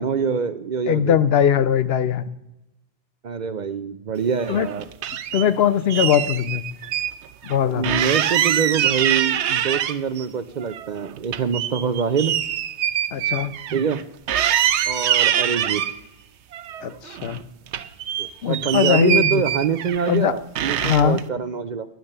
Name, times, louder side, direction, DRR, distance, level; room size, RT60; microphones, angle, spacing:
voice 1, 0.0-1.2 3.2-4.9 7.7-12.4 13.7-14.0 14.9-15.8 18.2-21.9, right 6 dB, 55° right, 12 dB, 0.6 m, -25 dB
voice 2, 0.9-2.3 4.5-4.7 5.3-6.6 7.4-8.0 13.1-13.5 16.8-17.4 18.4-19.4 20.1-20.3 20.8-21.2, left 9 dB, 70° left, 15 dB, 0.8 m, -20 dB
sound 1, 4.4-5.5 5.9-7.1 7.4-7.5 7.8-10.2 10.6-14.0 14.3-15.9 16.5-17.4 17.7-20.2 20.6-21.2, right 10 dB, 90° right, 0.9 m, -24 dB
10.5 x 8.9 x 6.6 m, 0.92 s
omnidirectional pair, 1.1 m